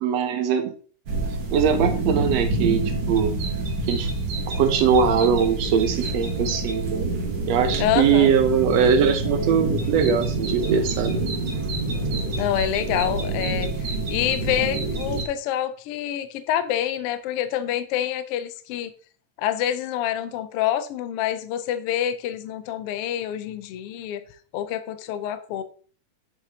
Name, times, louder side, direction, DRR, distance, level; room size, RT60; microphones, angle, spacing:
voice 1, 0.0-0.7 1.5-2.8 3.1-3.4 3.9-4.1 4.6-7.1 7.5-11.1, right 7 dB, 70° right, 1.8 m, -21 dB
sound 1, 1.1-15.2, right 2 dB, 50° right, 1.5 m, -27 dB
voice 2, 7.8-8.3 12.4-18.9 19.4-24.2 24.5-25.6, left 11 dB, 80° left, 1.3 m, -27 dB
8.2 x 7.1 x 2.8 m
omnidirectional pair, 3.4 m